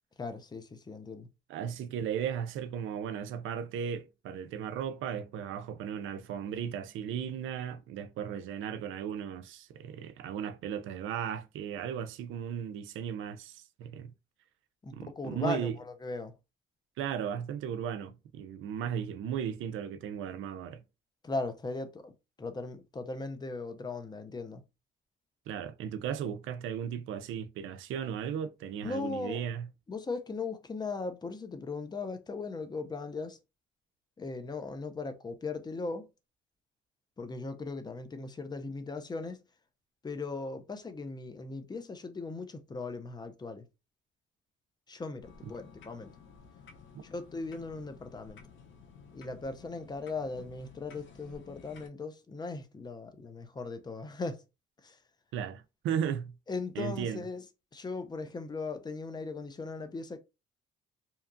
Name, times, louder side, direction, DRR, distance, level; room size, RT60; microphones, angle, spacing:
voice 1, 0.2-1.3 14.8-16.3 21.2-22.1 22.4-24.6 28.8-29.5 29.9-33.4 34.2-36.1 37.2-39.4 40.0-43.7 44.9-46.1 47.0-48.4 49.1-54.4 54.8-55.0 56.5-57.4 57.7-60.2, left 3 dB, 20° left, 0.5 m, -38 dB
voice 2, 1.5-14.1 14.9-15.8 17.0-20.8 25.5-29.7 46.9-47.0 55.3-56.4 56.8-57.2, right 8 dB, 80° right, 0.4 m, -36 dB
sound 1, 45.2-51.9, left 5 dB, 75° left, 0.6 m, -54 dB
2.8 x 2.3 x 2.5 m
cardioid pair, 90°, 20 cm